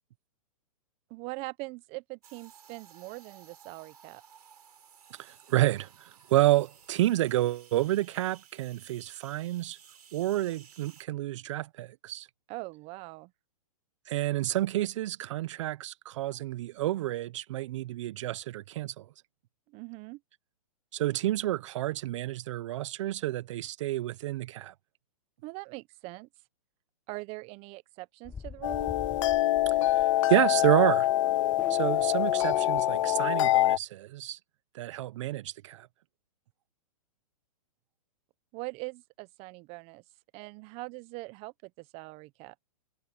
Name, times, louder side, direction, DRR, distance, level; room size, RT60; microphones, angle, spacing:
voice 1, 1.1-4.2 12.5-13.3 19.7-20.2 25.4-26.3 27.1-28.9 38.5-40.0 40.3-42.5, right 25 dB, 30° right, 1.0 m, -42 dB
sound 1, 2.2-11.0, right 7 dB, 85° right, 4.8 m, -56 dB
voice 2, 5.1-9.8 10.1-12.3 14.1-19.1 20.9-24.7 29.7-31.1 31.7-34.4 34.7-35.9, right 15 dB, 50° right, 0.8 m, -29 dB
Race car auto racing / Accelerating revving vroom, 28.2-33.5, left 5 dB, 5° left, 0.3 m, -42 dB
sound 2, 28.6-33.8, left 15 dB, 55° left, 0.6 m, -25 dB
hypercardioid pair, 135°, 19 cm